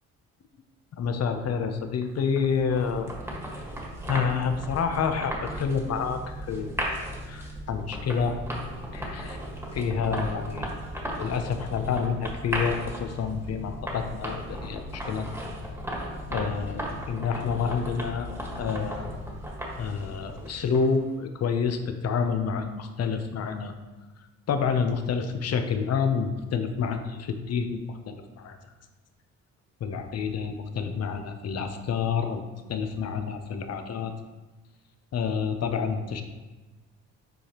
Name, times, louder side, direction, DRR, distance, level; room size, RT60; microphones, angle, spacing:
voice 1, 1.0-3.1 4.1-8.4 8.9-9.4 9.7-10.7 11.2-15.3 16.3-18.3 18.6-19.1 19.8-23.7 24.5-28.6 29.8-32.4 32.7-34.1 35.1-36.2, left 6 dB, 55° left, 7 dB, 0.8 m, -28 dB
sound 1, 2.0-21.0, equal, 10° right, 1.6 m, -36 dB
7.9 x 4.8 x 3.0 m, 1.2 s
cardioid pair, 90°, 30 cm